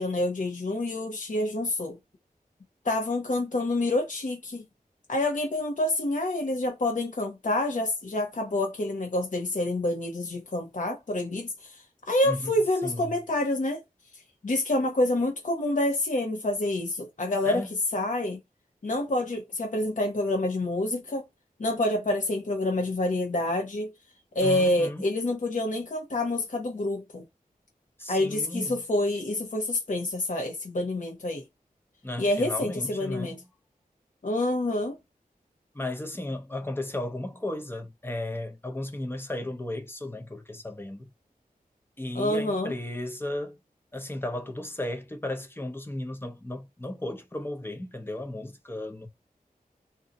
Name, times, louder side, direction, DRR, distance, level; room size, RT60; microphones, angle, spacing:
voice 1, 0.0-2.0 2.8-4.6 5.1-13.8 14.4-17.6 17.9-18.4 18.8-21.2 21.6-23.9 24.3-27.2 28.1-31.4 32.2-33.4 34.2-34.9 42.1-42.7, left 1 dB, 55° left, 0.9 m, -27 dB
voice 2, 12.8-13.1 17.4-17.7 24.4-25.1 28.0-28.8 32.0-33.4 35.7-41.1 42.0-43.6 43.9-49.1, left 1 dB, 15° left, 0.8 m, -35 dB
2.7 x 2.2 x 3.9 m
wide cardioid pair, 70°, 15 cm